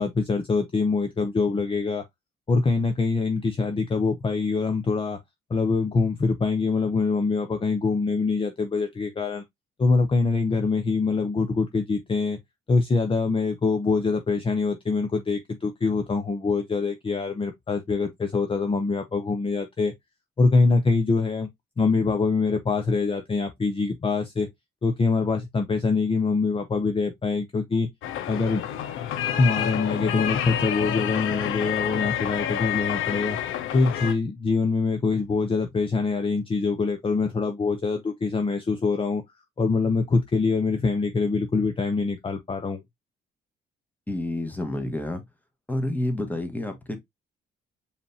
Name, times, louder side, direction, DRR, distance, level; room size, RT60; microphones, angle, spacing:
voice 1, 0.0-2.0 2.5-5.2 5.5-9.4 9.8-12.4 12.7-19.9 20.4-21.5 21.8-24.5 24.8-27.9 28.3-28.6 29.4-33.4 33.7-39.2 39.6-42.8, left 4 dB, 25° left, 0.7 m, -24 dB
sound 1, 28.0-34.1, left 10 dB, 90° left, 0.7 m, -28 dB
voice 2, 44.1-45.2 45.7-47.0, left 1 dB, 10° left, 1.5 m, -29 dB
5.0 x 3.4 x 2.8 m
cardioid pair, 90°, 20 cm